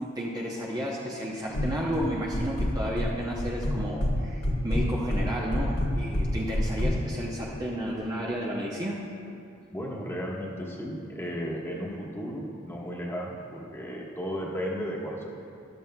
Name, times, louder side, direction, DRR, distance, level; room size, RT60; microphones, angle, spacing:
voice 1, 0.0-9.0, equal, 20° right, -4 dB, 0.7 m, -32 dB
sound 1, 1.5-2.1 2.3-3.1 3.4-4.1 4.4-6.9, left 1 dB, 80° left, 1.4 m, -27 dB
voice 2, 9.7-15.3, equal, 10° left, -3 dB, 1.3 m, -34 dB
13.5 x 12.0 x 2.3 m, 2.5 s
head